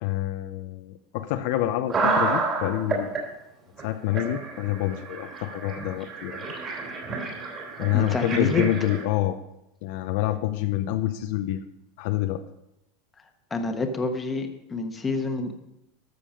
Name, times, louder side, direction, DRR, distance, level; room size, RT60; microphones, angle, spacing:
voice 1, 0.0-3.1 3.8-6.5 7.8-9.4 9.8-11.6 12.0-12.4, left 14 dB, 65° left, 8 dB, 0.7 m, -27 dB
sound 1, 1.9-3.2 3.8-3.9 4.1-9.0, right 3 dB, 30° right, 3.1 m, -30 dB
voice 2, 7.9-8.6 13.5-15.5, left 3 dB, 15° left, 5 dB, 1.2 m, -27 dB
13.0 x 6.8 x 5.2 m, 0.88 s
supercardioid pair, 140°, 0 cm